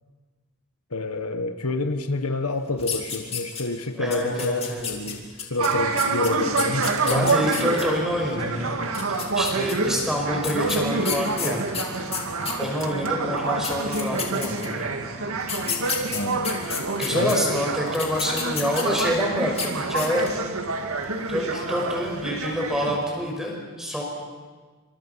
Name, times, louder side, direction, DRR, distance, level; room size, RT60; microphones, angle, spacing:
voice 1, 0.9-5.2 5.5-7.4 16.1-16.5 17.1-17.4, left 2 dB, 85° left, 1.5 m, -28 dB
sound 1, 2.8-3.8 4.1-7.8 8.8-9.7 10.4-12.9 13.4-13.5 13.6-14.8 15.4-17.3 17.9-19.2 19.5-19.7 20.0-20.4, left 7 dB, 25° left, 3.1 m, -31 dB
voice 2, 3.9-4.9 7.0-11.6 12.6-14.9 17.0-20.2 21.3-24.0, equal, ahead, 5.6 m, -27 dB
sound 2, 5.6-23.0, right 3 dB, 75° right, 2.0 m, -27 dB
27.5 x 26.0 x 5.8 m
head